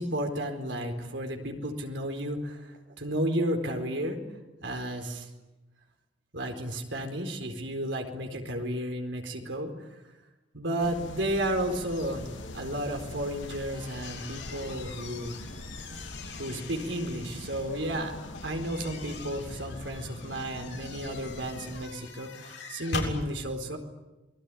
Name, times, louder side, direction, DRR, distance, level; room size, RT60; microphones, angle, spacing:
voice 1, 0.0-4.2 4.6-5.3 6.3-10.0 10.5-12.3 12.5-15.4 16.3-18.1 18.4-23.8, right 1 dB, 75° right, 4 dB, 4.3 m, -33 dB
sound 1, 10.8-21.9, left 1 dB, 85° left, 2.6 m, -43 dB
sound 2, 13.4-17.6 18.3-23.2, left 3 dB, 70° left, 7.1 m, -42 dB
28.0 x 20.5 x 9.9 m, 1.0 s
head